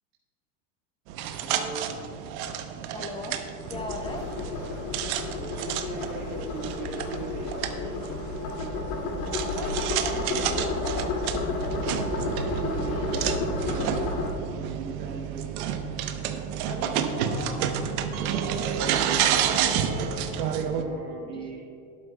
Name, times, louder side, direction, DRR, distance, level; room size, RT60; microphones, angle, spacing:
sound 1, 1.1-20.8, right 8 dB, 60° right, 1.0 m, -30 dB
voice 1, 1.4-1.8 5.3-8.0 10.4-10.8 12.1-14.1 14.4-15.5 20.7-21.6, right 3 dB, 90° right, -3 dB, 1.8 m, -39 dB
voice 2, 2.9-4.3 9.3-11.0 16.6-20.6 21.3-21.6, left 1 dB, 10° left, 2 dB, 0.9 m, -40 dB
sound 2, 3.6-14.3, left 2 dB, 55° left, 2.4 m, -31 dB
12.0 x 12.0 x 2.3 m, 2.7 s
supercardioid pair, 125°, 49 cm